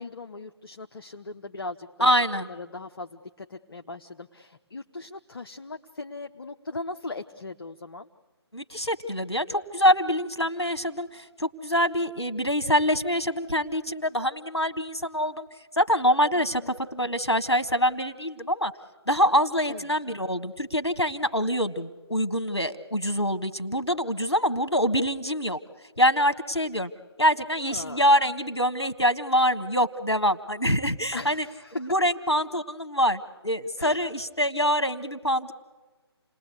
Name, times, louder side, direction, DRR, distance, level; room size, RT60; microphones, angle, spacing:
voice 1, 0.0-8.1 16.4-16.7 19.7-19.8 27.6-28.0 31.1-31.9 33.8-34.0, left 3 dB, 60° left, 5 dB, 1.1 m, -39 dB
voice 2, 2.0-2.5 8.5-15.5 15.7-18.7 19.1-25.6 26.0-26.9 27.2-31.5 31.8-35.5, equal, 90° left, 11 dB, 1.5 m, -25 dB
29.5 x 20.0 x 8.3 m, 1.3 s
figure-of-eight pair, 145°, 14 cm